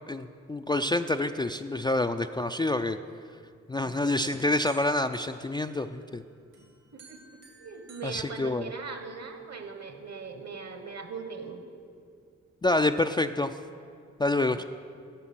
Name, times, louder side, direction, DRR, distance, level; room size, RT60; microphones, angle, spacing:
voice 1, 0.1-3.0 3.7-6.2 8.0-8.7 12.6-13.5 14.2-14.6, left 2 dB, 15° left, 7 dB, 0.3 m, -27 dB
voice 2, 3.8-4.3 6.6-6.7 6.9-11.6 14.5-14.6, right 4 dB, 55° right, 7 dB, 1.3 m, -40 dB
sound 1, 4.2-6.1 6.5-9.1, right 3 dB, 80° right, 2.9 m, -54 dB
10.0 x 6.9 x 6.1 m, 2.2 s
supercardioid pair, 45°, 32 cm